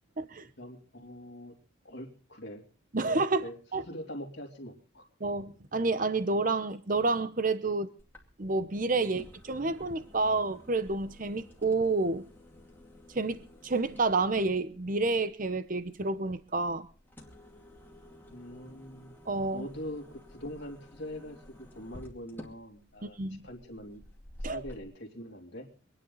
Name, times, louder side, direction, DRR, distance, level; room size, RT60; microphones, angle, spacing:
voice 1, 0.6-1.5 1.8-2.6 3.0-3.6 3.9-5.0 9.0-9.1 18.3-19.2 19.5-23.2 23.4-24.0 24.4-25.7, equal, 60° left, 2.8 m, -43 dB
voice 2, 2.9-3.8 5.2-7.9 8.4-12.2 13.1-16.9 19.3-19.7 23.0-23.4 24.4-24.6, right 3 dB, 40° right, 0.8 m, -29 dB
sound 1, 8.0-24.8, left 1 dB, 10° left, 2.4 m, -52 dB
25.0 x 10.0 x 4.0 m
head